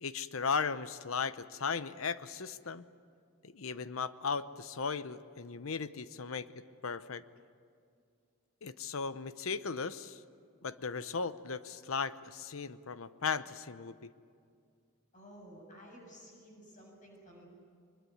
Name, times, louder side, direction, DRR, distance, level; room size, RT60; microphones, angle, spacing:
voice 1, 0.0-2.9 3.4-6.5 6.8-7.2 8.6-10.2 10.6-14.1, left 5 dB, 80° left, 14 dB, 0.8 m, -36 dB
voice 2, 15.1-17.4, equal, 35° left, 0 dB, 7.4 m, -53 dB
23.0 x 21.5 x 9.4 m, 2.3 s
head